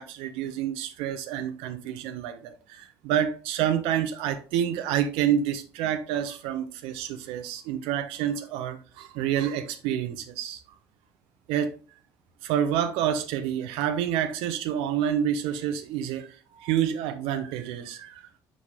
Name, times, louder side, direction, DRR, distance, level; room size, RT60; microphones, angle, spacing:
voice 1, 0.0-10.6 11.5-11.7 12.4-16.3 16.5-18.4, right 10 dB, 65° right, 0.5 m, -28 dB
6.0 x 4.6 x 3.4 m
figure-of-eight pair, 45°, 11 cm